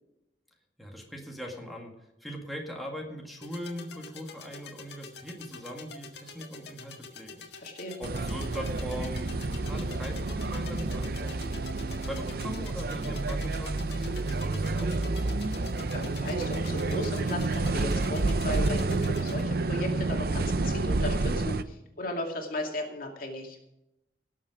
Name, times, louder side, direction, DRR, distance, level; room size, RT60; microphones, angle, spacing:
voice 1, 0.8-7.5 8.0-11.3 12.0-15.5, equal, ahead, -1 dB, 2.0 m, -40 dB
sound 1, 3.4-19.4, left 3 dB, 70° left, 1.7 m, -46 dB
voice 2, 7.6-8.0 15.9-23.6, left 1 dB, 55° left, 2 dB, 2.5 m, -35 dB
sound 2, 8.0-21.6, right 2 dB, 60° right, 0.7 m, -29 dB
18.0 x 7.5 x 5.0 m, 0.89 s
head